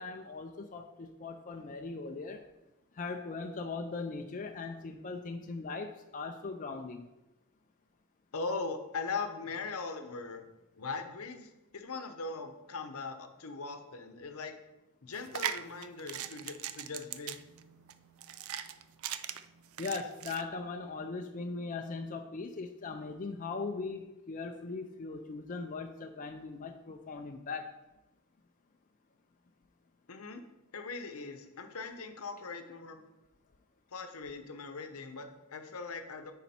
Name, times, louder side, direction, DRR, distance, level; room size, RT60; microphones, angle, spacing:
voice 1, 0.0-2.4 2.9-7.1 19.8-27.7, left 4 dB, 35° left, 4 dB, 0.4 m, -39 dB
voice 2, 8.3-10.4 10.8-14.5 15.0-17.4 30.1-30.4 30.7-33.0 33.9-36.3, left 4 dB, 75° left, 6 dB, 0.8 m, -40 dB
sound 1, 15.1-20.4, right 10 dB, 65° right, 0.4 m, -40 dB
9.5 x 4.1 x 4.3 m, 0.97 s
head